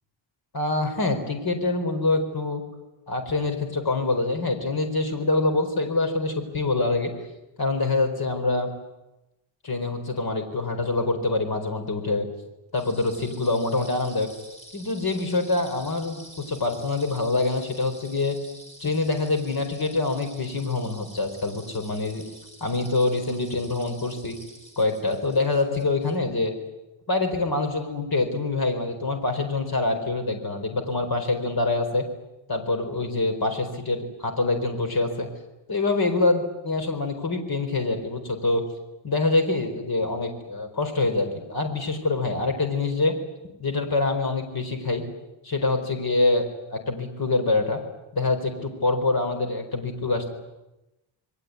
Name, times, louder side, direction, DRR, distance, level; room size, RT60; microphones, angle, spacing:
voice 1, 0.5-2.6 3.1-7.1 7.6-8.7 9.6-12.3 12.7-14.3 14.7-18.4 18.8-22.2 22.6-24.4 24.8-26.5 27.1-32.0 32.5-35.3 35.7-38.6 39.0-43.1 43.6-45.0 45.4-46.4 46.7-47.8 48.1-50.3, left 3 dB, 45° left, 5 dB, 4.6 m, -25 dB
sound 1, 12.7-26.2, right 1 dB, 15° left, 6.8 m, -48 dB
28.0 x 22.0 x 9.6 m, 0.98 s
wide cardioid pair, 160°, 49 cm